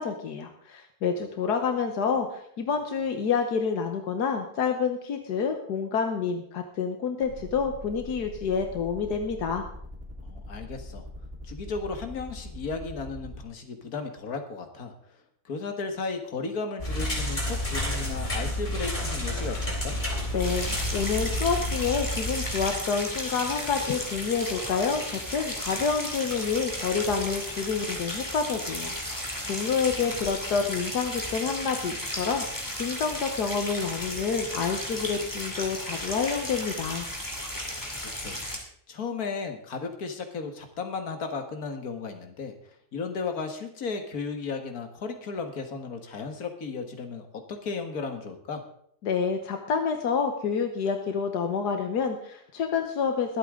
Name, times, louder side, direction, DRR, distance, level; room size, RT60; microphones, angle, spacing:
voice 1, 0.0-9.6 20.3-37.1 49.0-53.4, left 6 dB, 85° left, 5 dB, 1.7 m, -28 dB
sound 1, 7.2-13.4, equal, 45° right, 3.8 m, -41 dB
voice 2, 10.2-11.1 11.4-15.2 15.5-20.0 29.6-30.2 38.0-38.4 38.9-42.5 42.9-48.6, left 4 dB, 65° left, 6 dB, 2.1 m, -35 dB
sound 2, 16.8-22.7, left 1 dB, 30° left, 3.6 m, -30 dB
sound 3, 20.4-38.6, left 1 dB, 10° left, 2.6 m, -34 dB
22.5 x 8.5 x 3.8 m, 0.66 s
omnidirectional pair, 1.7 m